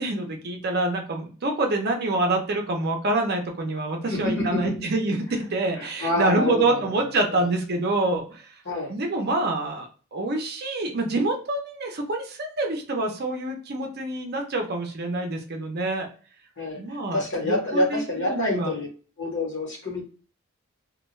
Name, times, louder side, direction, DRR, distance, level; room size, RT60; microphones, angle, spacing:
voice 1, 0.0-8.5 8.9-16.1 16.7-18.7, right 2 dB, 45° right, 2 dB, 0.5 m, -26 dB
voice 2, 4.1-4.8 5.8-7.5 8.6-8.9 16.6-16.8 17.1-18.9 19.2-20.0, left 1 dB, 55° left, -2 dB, 1.1 m, -27 dB
2.2 x 2.2 x 3.0 m, 0.39 s
head